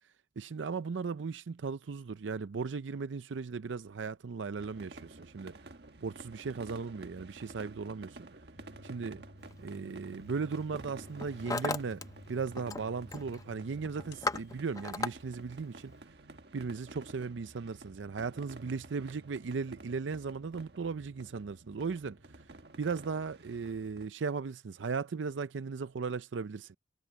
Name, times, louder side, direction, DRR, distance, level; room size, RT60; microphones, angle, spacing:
voice 1, 0.4-5.5 6.0-8.2 8.8-9.2 9.6-12.0 12.3-15.9 16.5-22.2 22.8-26.8, right 5 dB, 90° right, 0.5 m, -37 dB
sound 1, 4.6-24.1, right 2 dB, 60° right, 1.5 m, -52 dB
sound 2, 8.5-15.6, left 1 dB, 65° left, 3.9 m, -54 dB
Hammer, 9.5-9.8 10.5-10.8 11.1-12.0 12.3-12.8 13.1-13.4 13.8-15.1, left 3 dB, 20° left, 0.6 m, -35 dB
head